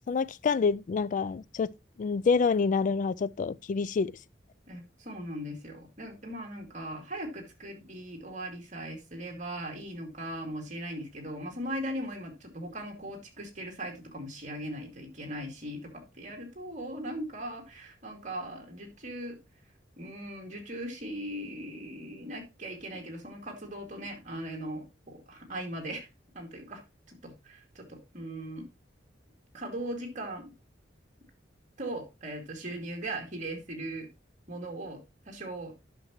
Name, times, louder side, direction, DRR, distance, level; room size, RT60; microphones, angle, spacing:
voice 1, 0.1-4.1, left 5 dB, 45° left, 0.3 m, -27 dB
voice 2, 4.7-19.4 20.0-26.1 26.3-26.8 27.1-28.7 29.5-30.5 31.8-34.1 34.5-35.8, right 1 dB, 40° right, 2.4 m, -39 dB
10.5 x 6.0 x 3.0 m
head